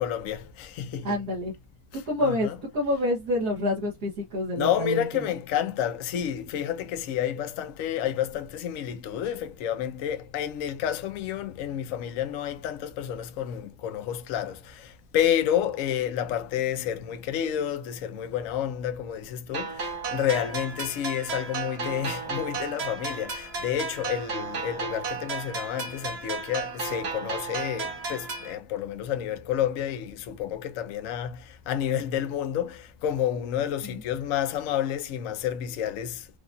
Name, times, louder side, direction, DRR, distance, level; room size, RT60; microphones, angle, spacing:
voice 1, 0.0-1.2 1.9-2.6 4.6-36.4, left 10 dB, 60° left, 0.9 m, -30 dB
voice 2, 1.0-1.5 1.9-5.3 33.8-34.0, left 1 dB, 70° right, 1.8 m, -28 dB
sound 1, 19.5-28.5, right 4 dB, 45° right, 1.0 m, -34 dB
4.8 x 2.3 x 2.6 m
omnidirectional pair, 1.8 m